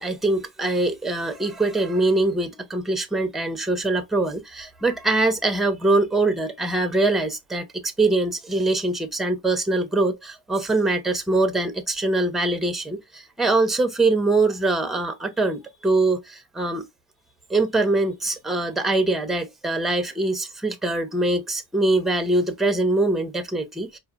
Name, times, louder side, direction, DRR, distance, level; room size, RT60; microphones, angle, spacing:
voice 1, 0.0-16.8 17.5-24.0, right 2 dB, ahead, 0.6 m, -23 dB
4.8 x 2.8 x 2.3 m
cardioid pair, 175°, 36 cm